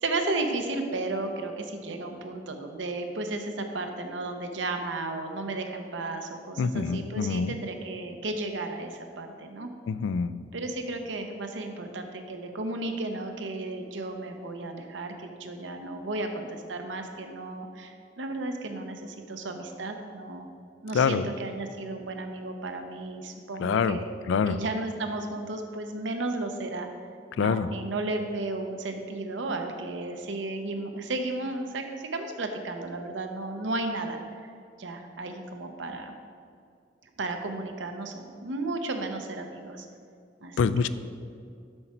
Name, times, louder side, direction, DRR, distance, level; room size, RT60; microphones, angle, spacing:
voice 1, 0.0-9.7 10.5-20.5 20.8-24.2 24.5-26.9 27.4-34.2 34.8-36.1 37.2-39.9 40.4-40.9, right 2 dB, 80° right, 5 dB, 0.8 m, -34 dB
voice 2, 6.6-7.5 9.9-10.4 20.9-21.3 23.6-24.6 27.4-27.7 40.6-40.9, left 5 dB, 85° left, 14 dB, 0.3 m, -26 dB
7.8 x 5.8 x 4.3 m, 2.3 s
head